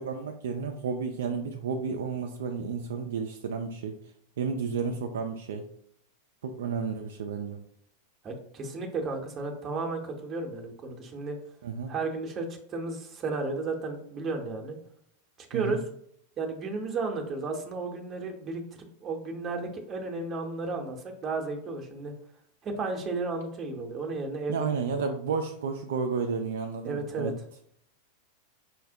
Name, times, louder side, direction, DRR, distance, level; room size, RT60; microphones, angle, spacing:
voice 1, 0.0-4.0 4.4-5.7 6.4-7.6 11.6-11.9 15.5-15.8 24.5-27.3, right 5 dB, 60° right, 4 dB, 0.3 m, -32 dB
voice 2, 8.2-11.4 11.9-14.7 15.4-15.8 16.4-22.1 22.6-24.7 26.8-27.3, right 3 dB, 25° right, 2 dB, 0.7 m, -33 dB
5.5 x 2.0 x 2.6 m, 0.68 s
figure-of-eight pair, 90°, 0 cm